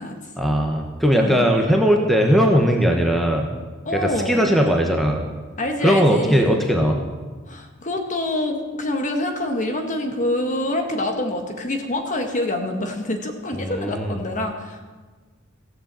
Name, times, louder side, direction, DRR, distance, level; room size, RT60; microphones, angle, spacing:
voice 1, 0.4-3.5 3.9-5.3 5.8-7.0 13.6-14.2, equal, ahead, 2 dB, 1.0 m, -19 dB
voice 2, 3.8-4.4 5.6-6.6 7.5-14.9, left 1 dB, 40° left, 4 dB, 1.5 m, -26 dB
15.0 x 7.7 x 7.5 m, 1.4 s
head